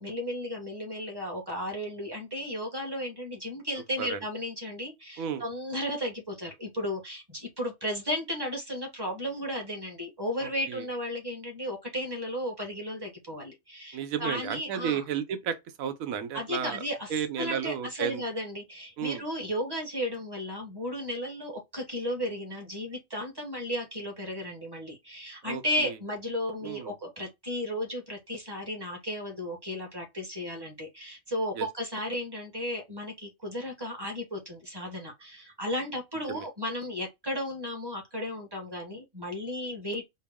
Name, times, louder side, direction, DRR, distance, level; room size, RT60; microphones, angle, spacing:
voice 1, 0.0-15.0 16.3-40.1, left 1 dB, 20° right, 1.0 m, -34 dB
voice 2, 10.4-10.9 13.9-16.8 17.1-18.2 19.0-19.2 25.4-26.0 26.6-26.9 31.6-31.7 36.3-36.5, right 8 dB, 85° right, 1.1 m, -33 dB
4.4 x 2.1 x 3.4 m
omnidirectional pair, 1.4 m